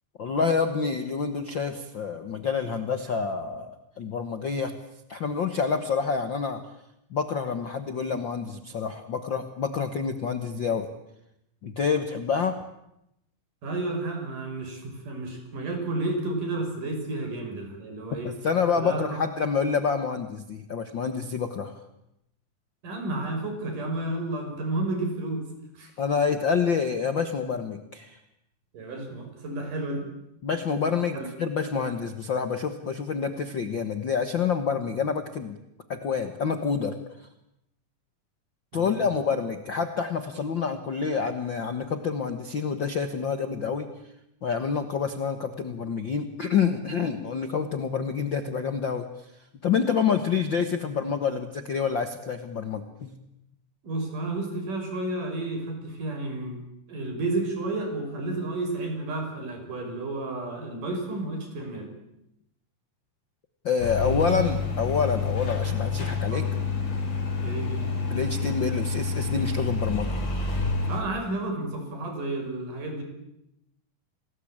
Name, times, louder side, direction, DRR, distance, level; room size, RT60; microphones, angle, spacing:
voice 1, 0.2-4.7 5.1-6.6 7.1-10.9 11.6-12.6 18.2-21.8 26.0-28.2 30.4-35.6 35.9-37.3 38.7-43.9 44.4-49.1 49.3-53.1 63.6-66.5 68.1-70.2, left 6 dB, 50° left, 8 dB, 1.4 m, -28 dB
voice 2, 13.6-18.3 18.8-19.2 22.8-25.5 25.8-25.9 28.7-30.1 31.1-31.3 38.7-39.2 53.8-56.6 56.9-61.9 64.0-64.5 65.1-65.2 66.3-66.5 67.4-67.8 70.9-73.0, right 2 dB, 65° right, 5 dB, 7.0 m, -31 dB
sound 1, 63.8-71.0, left 4 dB, 85° left, 6.5 m, -28 dB
28.5 x 20.0 x 8.8 m, 0.84 s
omnidirectional pair, 4.0 m